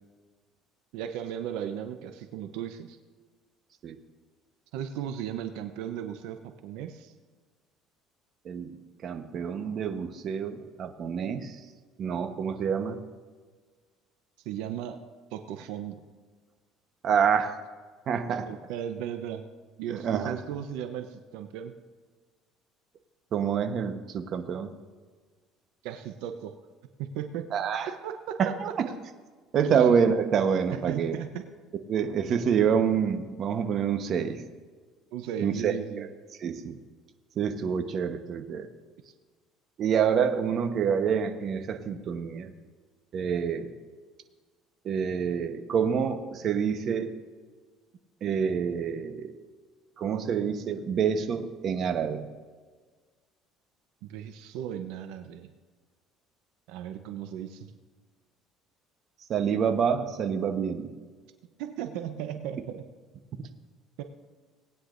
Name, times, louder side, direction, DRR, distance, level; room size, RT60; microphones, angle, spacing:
voice 1, 0.9-3.0 4.7-7.1 14.4-15.0 15.3-16.0 18.5-19.4 19.8-21.7 25.8-26.5 27.0-27.5 27.9-28.4 28.9-29.0 29.6-29.9 30.7-31.5 35.1-36.1 54.0-55.5 56.7-57.7 61.6-62.9 64.0-64.1, right 9 dB, 80° right, 7 dB, 0.8 m, -36 dB
voice 2, 9.0-11.5 12.0-13.0 17.0-17.5 18.1-18.5 19.9-20.3 23.3-24.7 27.5-27.9 28.4-28.9 29.5-31.1 31.9-34.4 35.4-36.1 36.4-36.8 37.4-38.7 39.8-42.5 43.1-43.7 44.8-47.1 48.2-49.3 50.0-52.3 59.3-60.9, right 7 dB, 50° right, 7 dB, 1.0 m, -27 dB
19.5 x 9.7 x 2.6 m, 1.4 s
cardioid pair, 115°, 0 cm